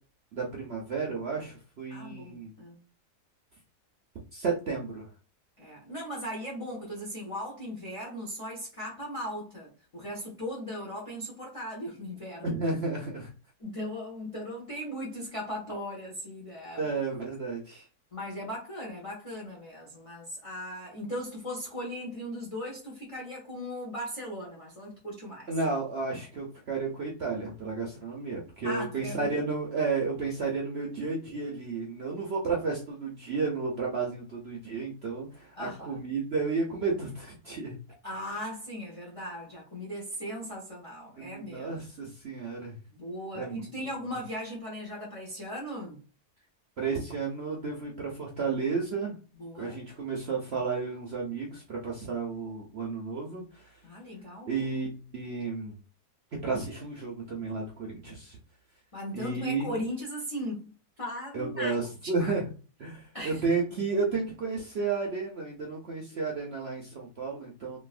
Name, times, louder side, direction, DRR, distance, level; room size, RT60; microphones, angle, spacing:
voice 1, 0.3-2.5 4.3-5.1 12.4-13.3 16.8-17.9 25.5-37.8 41.2-42.8 43.3-43.7 46.8-49.2 49.6-53.7 54.5-55.7 56.4-58.4 59.1-59.7 61.3-62.4 62.8-67.8, right 4 dB, 60° right, 0.7 m, -32 dB
voice 2, 1.9-2.8 5.6-12.6 13.6-16.8 18.1-25.5 28.6-29.4 35.6-36.0 38.0-41.7 42.9-46.0 49.3-49.8 53.8-54.5 58.9-60.7 61.0-61.7 62.0-62.4 63.1-63.4, equal, 35° left, 0.5 m, -38 dB
3.0 x 2.6 x 2.4 m
omnidirectional pair, 1.7 m